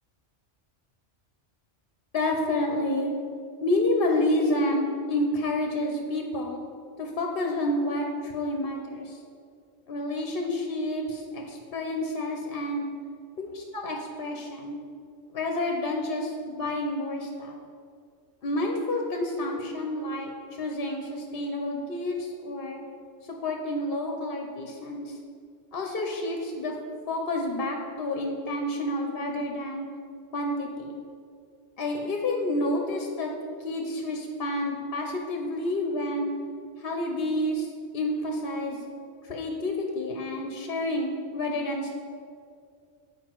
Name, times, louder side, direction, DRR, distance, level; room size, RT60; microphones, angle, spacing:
voice 1, 2.1-3.1 3.6-6.6 7.0-9.2 9.9-12.9 13.4-14.8 15.3-17.6 18.4-22.8 23.4-25.2 25.7-26.7 27.1-29.9 30.3-31.0 31.8-33.3 33.6-36.3 36.8-38.8 39.2-41.9, left 1 dB, 60° left, 2 dB, 0.8 m, -29 dB
7.8 x 5.0 x 4.5 m, 2.3 s
omnidirectional pair, 1.2 m